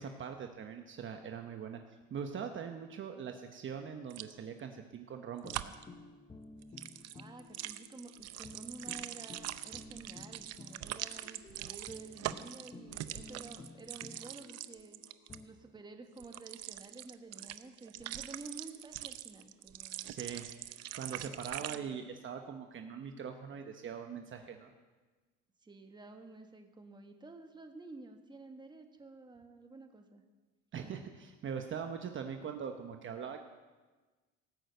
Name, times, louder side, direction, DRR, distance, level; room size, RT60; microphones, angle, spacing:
voice 1, 0.0-1.8 2.1-5.7 20.0-24.7 30.7-33.4, right 7 dB, 40° right, 5 dB, 1.0 m, -42 dB
sound 1, 4.1-4.3 5.5-5.8 6.6-15.4 16.2-21.8, right 14 dB, 55° right, 0.7 m, -43 dB
sound 2, 5.4-15.5, left 3 dB, 20° left, 0.9 m, -54 dB
voice 2, 7.1-15.0 15.4-20.1 25.6-30.2, right 3 dB, 15° right, 5 dB, 1.5 m, -51 dB
18.0 x 6.3 x 8.0 m, 1.3 s
cardioid pair, 110°, 30 cm